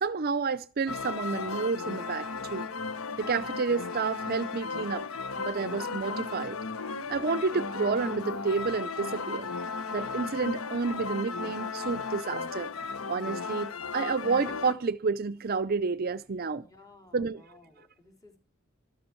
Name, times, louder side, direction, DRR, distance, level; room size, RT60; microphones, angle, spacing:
voice 1, 0.0-2.7 3.2-5.1 5.4-6.6 7.1-9.5 9.9-12.7 13.1-16.7 17.1-17.4, right 4 dB, 45° right, 0.5 m, -30 dB
sound 1, 0.9-14.7, left 4 dB, 85° left, 1.1 m, -35 dB
voice 2, 16.5-18.4, left 2 dB, 15° left, 3.8 m, -56 dB
13.0 x 13.0 x 4.5 m
head